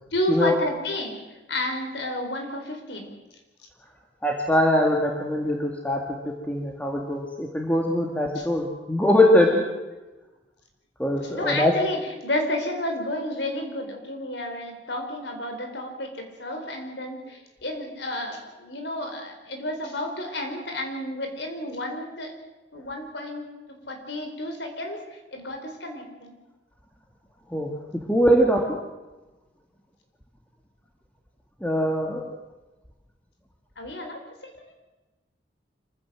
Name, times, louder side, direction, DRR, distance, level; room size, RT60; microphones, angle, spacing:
voice 1, 0.1-1.2 1.5-3.1 8.3-8.5 11.2-22.3 22.7-23.5 23.9-26.3 28.5-28.7 33.8-34.7, left 1 dB, 70° left, 4 dB, 4.5 m, -31 dB
voice 2, 4.2-6.0 6.5-9.6 11.0-11.7 27.5-28.8 31.6-32.3, left 1 dB, 10° left, 0 dB, 2.1 m, -22 dB
26.0 x 15.5 x 7.7 m, 1.1 s
head